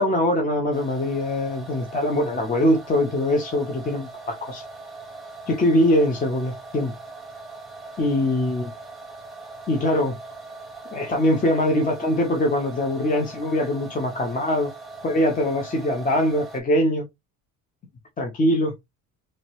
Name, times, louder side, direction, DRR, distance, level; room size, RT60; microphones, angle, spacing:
voice 1, 0.0-4.6 5.5-6.9 8.0-8.7 9.7-10.1 10.9-14.7 15.0-17.0 18.2-18.7, left 1 dB, 25° left, 0.5 m, -22 dB
sound 1, 0.7-16.6, right 3 dB, ahead, 0.9 m, -41 dB
3.1 x 2.8 x 3.0 m
cardioid pair, 180°, 34 cm